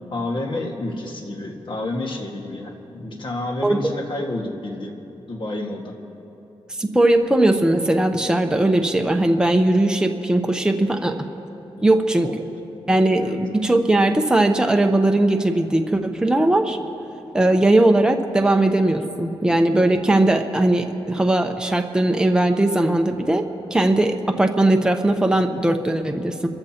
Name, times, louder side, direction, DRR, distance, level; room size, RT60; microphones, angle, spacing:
voice 1, 0.1-5.0 5.2-5.9 11.7-12.4 13.2-13.4, left 2 dB, 55° left, 2 dB, 1.8 m, -30 dB
voice 2, 3.6-3.9 6.8-11.2 11.8-12.3 12.9-16.8 17.3-26.5, right 1 dB, 10° right, 4 dB, 0.9 m, -19 dB
28.0 x 14.5 x 2.9 m, 3.0 s
cardioid pair, 90°, 10 cm